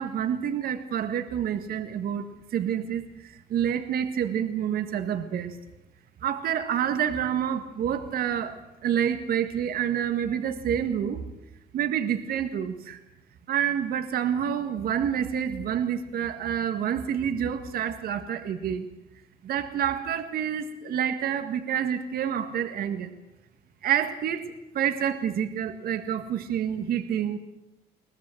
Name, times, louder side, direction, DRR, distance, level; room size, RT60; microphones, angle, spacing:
voice 1, 0.0-2.2 2.5-5.5 6.2-8.6 8.8-11.2 11.7-13.0 13.5-18.9 19.4-23.1 23.8-24.5 24.7-27.4, right 9 dB, 60° right, 8 dB, 1.8 m, -28 dB
22.0 x 19.0 x 7.8 m, 0.91 s
cardioid pair, 110°, 17 cm